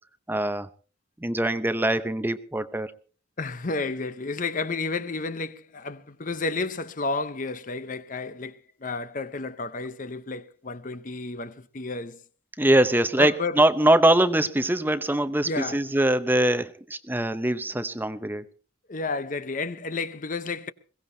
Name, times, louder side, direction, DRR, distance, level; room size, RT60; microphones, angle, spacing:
voice 1, 0.3-0.7 1.2-2.9 12.6-18.5, right 1 dB, 10° right, 0.7 m, -23 dB
voice 2, 3.4-12.2 13.2-13.6 15.4-15.8 18.9-20.7, left 3 dB, 40° left, 0.8 m, -31 dB
22.0 x 17.0 x 2.8 m
head